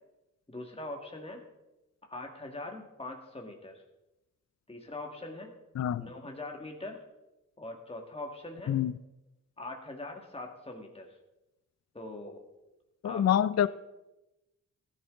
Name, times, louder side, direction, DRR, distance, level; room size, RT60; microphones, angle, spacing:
voice 1, 0.5-1.4 2.1-3.8 4.7-5.5 6.0-7.0 7.6-8.8 9.6-11.1 11.9-12.4 13.0-13.3 13.6-13.7, left 2 dB, 15° left, 2 dB, 1.8 m, -42 dB
voice 2, 5.8-6.1 8.7-8.9 13.0-13.7, left 10 dB, 50° left, 17 dB, 0.4 m, -26 dB
15.0 x 10.0 x 3.7 m, 0.97 s
cardioid pair, 55°, 35 cm